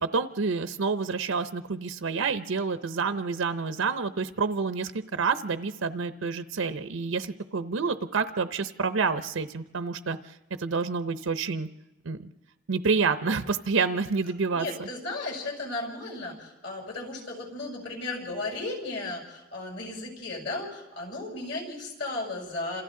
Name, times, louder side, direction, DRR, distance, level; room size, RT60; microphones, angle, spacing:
voice 1, 0.0-11.7 12.0-12.3 12.7-14.7, right 4 dB, 85° right, 11 dB, 0.7 m, -28 dB
voice 2, 14.5-22.8, left 2 dB, 65° left, -1 dB, 6.7 m, -35 dB
29.5 x 27.0 x 3.8 m, 1.0 s
head